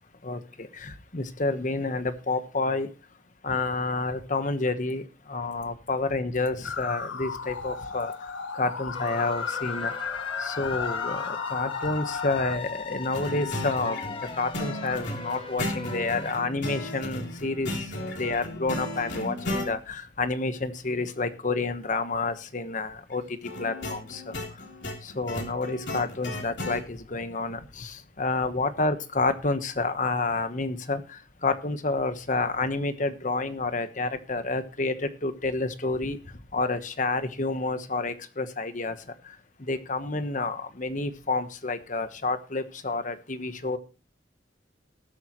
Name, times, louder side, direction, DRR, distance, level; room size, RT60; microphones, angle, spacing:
voice 1, 0.8-2.9 3.4-5.0 5.3-8.1 8.6-9.9 10.4-14.0 14.4-17.7 18.1-23.2 23.6-24.2 25.2-27.9 28.2-31.0 31.4-34.9 35.2-36.2 36.5-38.9 39.7-43.8, left 3 dB, 45° left, 10 dB, 1.2 m, -29 dB
sound 1, 6.6-12.6, left 5 dB, 90° left, 0.8 m, -34 dB
sound 2, 8.9-16.3, left 4 dB, 30° left, 1.7 m, -39 dB
sound 3, 13.1-19.7 23.4-26.8, left 1 dB, 70° left, 3.4 m, -35 dB
19.5 x 8.3 x 3.1 m, 0.33 s
head